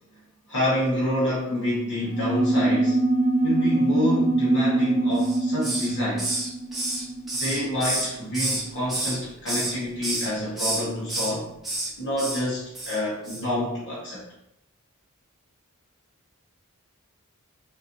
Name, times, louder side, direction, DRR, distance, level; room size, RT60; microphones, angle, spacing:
voice 1, 0.5-3.0 3.4-6.4 7.3-11.5 12.0-14.2, left 1 dB, 55° left, -8 dB, 1.0 m, -28 dB
sound 1, 2.0-8.0, right 2 dB, 35° right, 0.5 m, -24 dB
Hiss, 5.2-5.9 6.2-8.6 8.9-9.7 10.0-10.3 10.6-11.3 11.6-11.9 12.2-12.4 12.7-13.0 13.2-13.4, right 1 dB, ahead, 0.9 m, -29 dB
4.2 x 2.6 x 2.5 m, 0.83 s
head